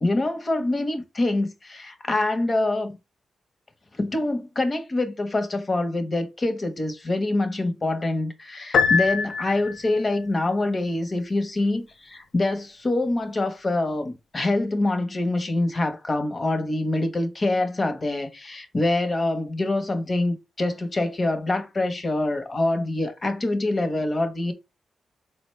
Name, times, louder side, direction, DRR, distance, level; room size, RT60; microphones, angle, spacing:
voice 1, 0.0-3.0 3.9-24.5, left 2 dB, 35° left, 0.8 m, -25 dB
Piano, 8.7-10.0, left 6 dB, 75° left, 0.4 m, -23 dB
4.0 x 2.1 x 3.1 m
cardioid pair, 65°, 0 cm